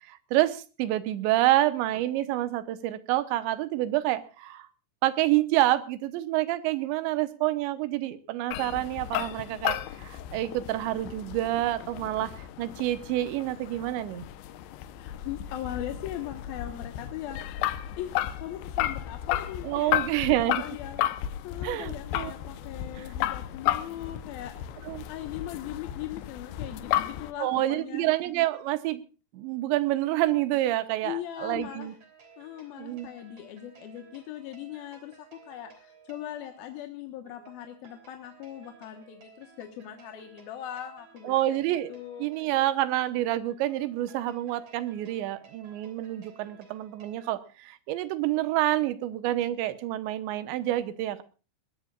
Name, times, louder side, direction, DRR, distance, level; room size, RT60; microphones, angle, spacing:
voice 1, 0.1-4.7 5.0-14.2 19.6-20.6 21.6-22.3 23.0-23.1 24.9-25.0 27.4-29.0 29.3-31.9 32.8-33.1 41.2-41.9 42.2-51.2, right 15 dB, 90° right, 13 dB, 3.3 m, -28 dB
sound 1, 8.5-27.3, left 13 dB, 85° left, 3.2 m, -33 dB
voice 2, 14.9-17.4 18.0-20.0 20.5-21.0 21.4-24.5 25.1-28.1 31.0-31.9 32.4-41.6 41.9-42.3, left 11 dB, 65° left, 5 dB, 2.9 m, -39 dB
sound 2, 31.5-47.3, right 6 dB, 40° right, 3.9 m, -56 dB
20.5 x 19.5 x 2.4 m, 0.34 s
omnidirectional pair, 5.1 m